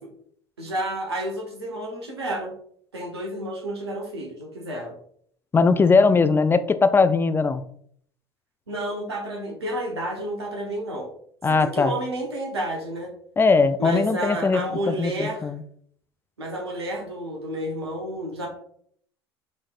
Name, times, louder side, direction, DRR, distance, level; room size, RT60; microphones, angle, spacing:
voice 1, 0.6-2.5 2.9-4.9 8.7-11.1 11.5-13.1 13.8-15.5 16.4-18.5, right 1 dB, 85° right, 1 dB, 1.0 m, -30 dB
voice 2, 5.5-7.6 11.4-11.9 13.4-15.6, left 4 dB, 15° left, 13 dB, 0.3 m, -20 dB
5.3 x 3.1 x 2.3 m, 0.63 s
hypercardioid pair, 70°, 13 cm